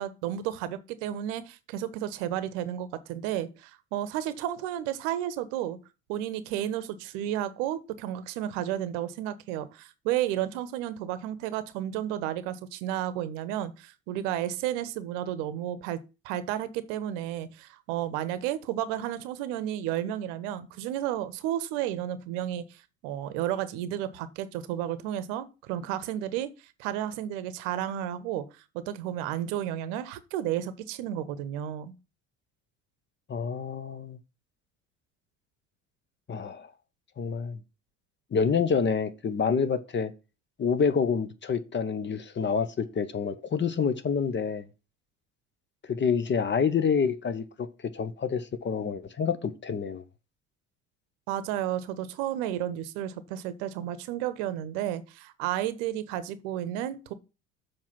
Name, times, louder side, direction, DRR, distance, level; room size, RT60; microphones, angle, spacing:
voice 1, 0.0-5.8 6.1-26.5 26.8-28.4 28.7-31.9 51.3-57.1, right 11 dB, 60° right, 0.9 m, -32 dB
voice 2, 33.3-34.2 36.3-36.7 37.2-37.6 38.3-40.1 40.6-44.7 45.9-47.7 47.9-50.0, left 6 dB, 25° left, 1.0 m, -27 dB
7.3 x 4.8 x 5.9 m
figure-of-eight pair, 60°, 41 cm